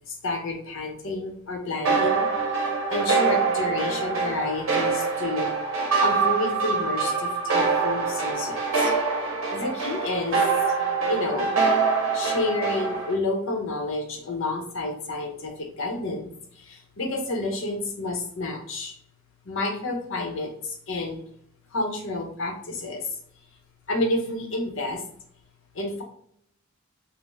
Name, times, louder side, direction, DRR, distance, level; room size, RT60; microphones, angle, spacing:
voice 1, 0.1-2.3 2.9-5.5 6.0-8.9 9.5-10.4 11.1-11.5 12.1-16.3 16.6-19.0 19.5-21.2 21.7-23.0 23.9-25.0 25.7-26.0, left 2 dB, 60° left, 2 dB, 0.7 m, -30 dB
sound 1, 1.8-13.1, right 4 dB, 70° right, 0.8 m, -24 dB
3.7 x 2.0 x 2.5 m, 0.66 s
head